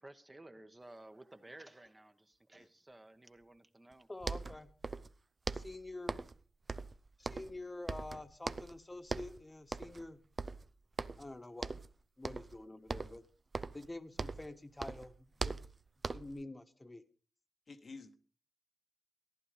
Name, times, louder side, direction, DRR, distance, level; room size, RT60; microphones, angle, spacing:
voice 1, 0.0-4.1, right 1 dB, 25° right, 8 dB, 1.3 m, -55 dB
sound 1, 3.9-4.0 4.2-5.2 5.4-6.4 6.7-7.6 7.9-8.8 9.1-9.4 9.7-10.1 10.4-11.3 11.6-11.9 12.2-12.6 12.9-14.5 14.8-16.4, right 3 dB, 45° right, 0.7 m, -41 dB
voice 2, 4.1-4.7 5.5-6.2 7.2-10.2 11.2-11.8 12.2-13.2 13.7-15.6 16.1-17.0, left 2 dB, 25° left, 9 dB, 1.4 m, -47 dB
voice 3, 17.7-18.1, left 4 dB, 60° left, 7 dB, 1.3 m, -50 dB
14.5 x 11.0 x 5.1 m, 0.39 s
cardioid pair, 60°, 0 cm